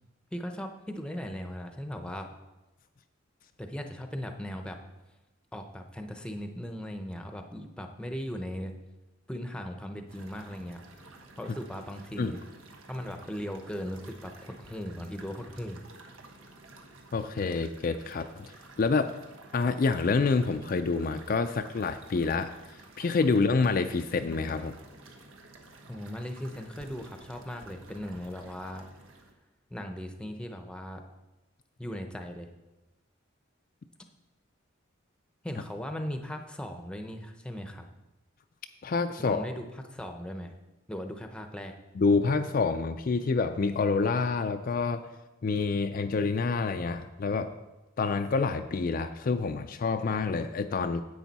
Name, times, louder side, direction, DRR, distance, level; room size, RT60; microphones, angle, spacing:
voice 1, 0.3-2.3 3.6-4.8 5.5-8.8 9.3-10.8 11.4-12.4 12.9-15.9 25.9-28.9 29.7-31.0 31.8-32.5 35.4-37.9 39.2-40.5 40.9-41.8, equal, 5° left, 5 dB, 0.7 m, -38 dB
sound 1, 10.1-29.3, right 2 dB, 85° right, 1.2 m, -52 dB
voice 2, 17.1-18.5 18.8-19.1 19.5-22.6 23.0-24.8 38.8-39.5 42.0-45.1 45.4-47.5 48.0-51.0, left 4 dB, 45° left, 7 dB, 0.4 m, -27 dB
10.5 x 8.1 x 4.1 m, 1.0 s
head